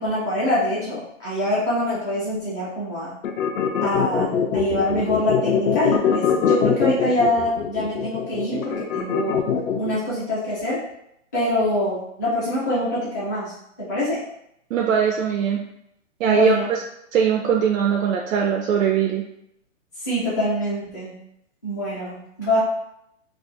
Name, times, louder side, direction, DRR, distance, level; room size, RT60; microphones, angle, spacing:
voice 1, 0.0-3.1 3.8-9.5 9.8-10.8 11.3-13.5 13.8-14.2 16.2-16.6 20.0-21.2 21.6-22.6, left 1 dB, 15° left, -10 dB, 0.5 m, -24 dB
sound 1, 3.2-10.0, left 7 dB, 90° left, 0.6 m, -22 dB
voice 2, 14.7-15.6 16.2-16.8 17.1-19.2, right 7 dB, 90° right, 1 dB, 0.5 m, -21 dB
2.5 x 2.4 x 3.8 m, 0.78 s
hypercardioid pair, 170°, 39 cm